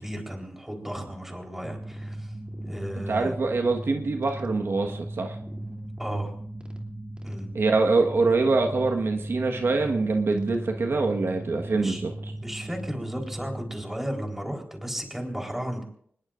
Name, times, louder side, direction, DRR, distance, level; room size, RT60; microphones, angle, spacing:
voice 1, 0.0-2.3 2.6-3.4 6.0-6.3 7.2-7.5 11.7-12.0 12.4-15.8, equal, 5° right, 1 dB, 4.1 m, -34 dB
sound 1, 1.6-13.8, right 1 dB, 20° right, 3.0 m, -37 dB
voice 2, 3.1-5.4 7.5-12.1, right 3 dB, 65° right, 2 dB, 1.5 m, -24 dB
25.5 x 20.5 x 2.6 m, 0.62 s
wide cardioid pair, 90°, 4 cm